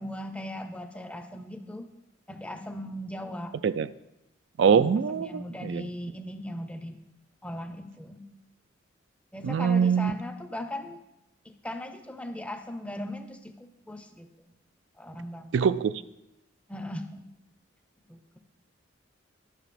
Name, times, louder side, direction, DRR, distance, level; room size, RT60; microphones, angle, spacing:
voice 1, 0.0-1.9 2.3-3.5 4.6-7.0 7.4-8.3 9.3-11.0 11.5-14.3 15.0-15.5 16.7-17.3 18.1-18.4, left 1 dB, 5° left, 0.6 m, -38 dB
voice 2, 4.6-5.9 9.4-10.2 15.5-15.9, right 6 dB, 65° right, 0.3 m, -23 dB
11.5 x 6.6 x 4.2 m
head